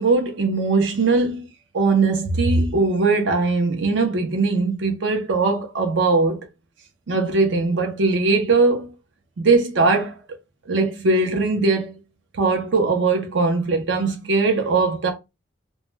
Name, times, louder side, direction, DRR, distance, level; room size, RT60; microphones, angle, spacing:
voice 1, 0.0-1.5 1.7-6.5 7.1-8.9 9.4-10.2 10.7-12.0 12.3-15.1, right 3 dB, 70° right, 0.5 m, -20 dB
2.1 x 2.1 x 3.1 m
head